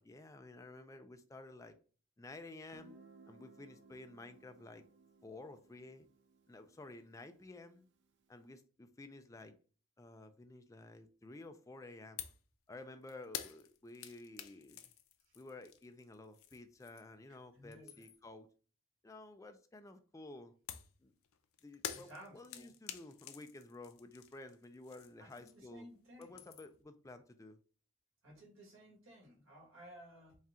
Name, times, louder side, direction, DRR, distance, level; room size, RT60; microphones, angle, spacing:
voice 1, 0.0-1.8 2.2-3.0 3.3-4.9 5.2-6.1 6.5-7.9 8.3-9.6 10.0-12.2 12.7-14.9 15.3-18.5 19.0-20.5 21.0-21.1 21.6-25.9 26.2-27.6, left 2 dB, 15° left, 0.4 m, -53 dB
Guitar, 2.7-8.3, right 4 dB, 55° right, 0.5 m, -63 dB
sound 1, 12.2-12.5 12.7-17.2 17.6-18.3 20.7-25.8 26.1-26.8, left 9 dB, 85° left, 0.5 m, -49 dB
voice 2, 17.5-18.0 21.9-22.7 25.2-26.3 28.2-30.4, equal, 75° right, 1.6 m, -56 dB
4.2 x 2.4 x 3.5 m
head